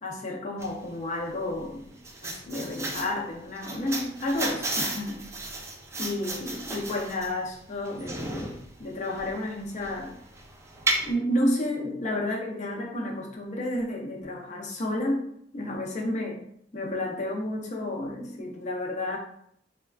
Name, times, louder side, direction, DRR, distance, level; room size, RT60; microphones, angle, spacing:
voice 1, 0.0-1.9 2.2-5.2 6.0-10.1 11.0-15.2 15.5-16.4 16.7-19.2, left 1 dB, 40° left, -1 dB, 0.6 m, -31 dB
sound 1, 0.6-11.1, right 2 dB, 15° right, 0.3 m, -34 dB
3.5 x 2.2 x 2.4 m, 0.70 s
head